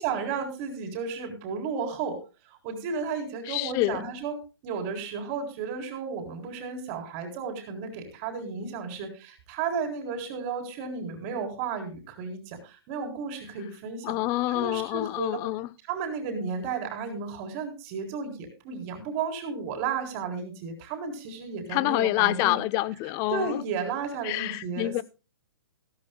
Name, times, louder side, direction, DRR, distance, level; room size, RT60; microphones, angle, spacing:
voice 1, 0.0-2.2 2.5-14.1 14.5-15.4 15.9-22.6 23.3-25.0, right 5 dB, 35° right, 4.0 m, -33 dB
voice 2, 3.5-4.0 14.0-15.7 21.7-23.6 24.2-25.0, left 18 dB, 25° left, 0.5 m, -27 dB
16.0 x 13.5 x 2.2 m
hypercardioid pair, 150°, 13 cm